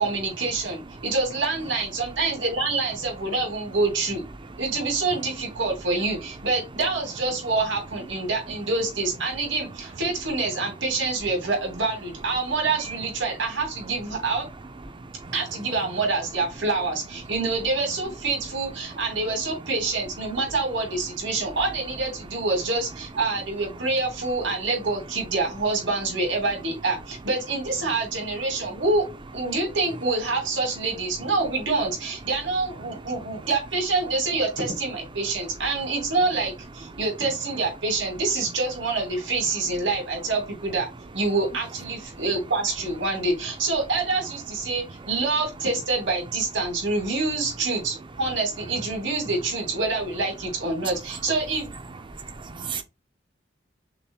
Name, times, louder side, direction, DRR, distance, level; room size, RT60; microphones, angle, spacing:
voice 1, 0.0-4.2 4.6-14.5 15.3-29.1 29.3-40.9 41.1-51.7, right 3 dB, 75° right, 2.6 m, -26 dB
voice 2, 14.9-15.6 20.3-20.4 21.5-21.6 23.8-23.9 32.8-33.3 36.9-37.0 42.1-42.2 44.8-45.1 50.8-51.2 52.1-52.8, right 5 dB, 25° right, 0.6 m, -38 dB
6.0 x 3.2 x 2.3 m
head